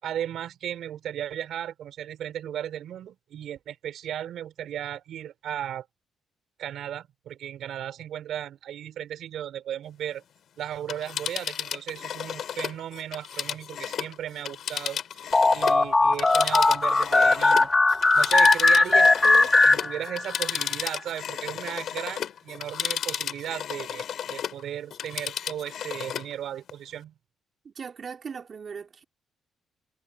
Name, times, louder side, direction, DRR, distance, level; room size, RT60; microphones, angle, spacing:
voice 1, 0.0-5.9 6.6-10.2 10.6-17.7 18.1-27.1, right 10 dB, 75° right, 4.5 m, -36 dB
Telephone, 10.8-15.8 16.1-24.6 24.9-26.3 26.7-26.8, left 9 dB, 70° left, 2.7 m, -33 dB
sound 1, 15.3-20.4, left 3 dB, 20° left, 0.9 m, -19 dB
voice 2, 27.6-29.0, right 6 dB, 45° right, 3.8 m, -39 dB
cardioid pair, 90°, 0 cm